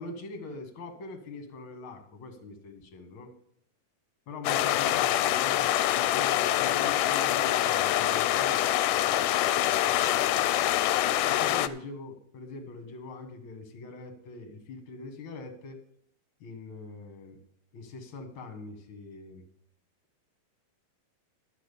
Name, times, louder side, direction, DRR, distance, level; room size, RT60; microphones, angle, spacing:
voice 1, 0.0-3.4 4.3-8.6 11.3-15.8 16.4-17.4 17.7-19.4, left 3 dB, 50° left, 6 dB, 1.9 m, -42 dB
sound 1, 4.4-11.7, left 13 dB, 80° left, 2.0 m, -25 dB
12.0 x 6.5 x 6.8 m, 0.72 s
omnidirectional pair, 3.8 m